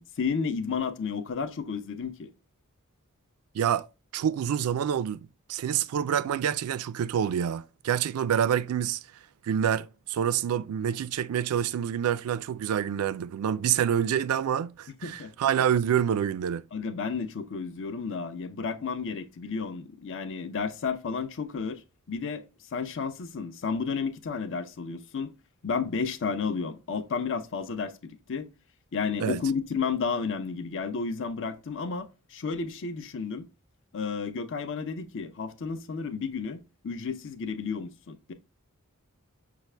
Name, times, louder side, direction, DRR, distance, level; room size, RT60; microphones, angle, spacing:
voice 1, 0.0-2.3 15.0-15.3 16.7-21.8 22.1-22.4 22.7-25.3 25.6-28.5 28.9-33.5 33.9-38.3, left 5 dB, 60° left, 0.6 m, -32 dB
voice 2, 3.5-3.9 4.1-9.0 9.4-16.7 29.2-29.4, right 9 dB, 75° right, 0.3 m, -27 dB
6.0 x 2.4 x 3.2 m
head